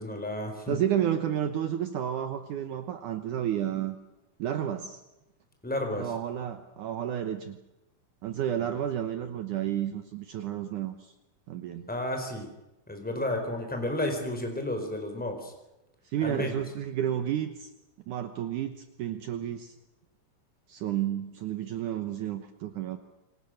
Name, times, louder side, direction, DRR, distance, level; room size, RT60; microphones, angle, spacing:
voice 1, 0.0-0.8 5.6-6.1 8.6-8.7 11.9-12.5 12.9-15.5 16.2-16.5, left 1 dB, ahead, 4 dB, 4.1 m, -32 dB
voice 2, 0.7-4.0 4.4-5.0 6.0-7.6 8.2-11.1 11.5-11.9 16.1-17.7 18.1-19.7 20.7-23.0, right 10 dB, 65° right, 8 dB, 2.3 m, -31 dB
27.5 x 25.0 x 6.6 m, 0.98 s
omnidirectional pair, 4.3 m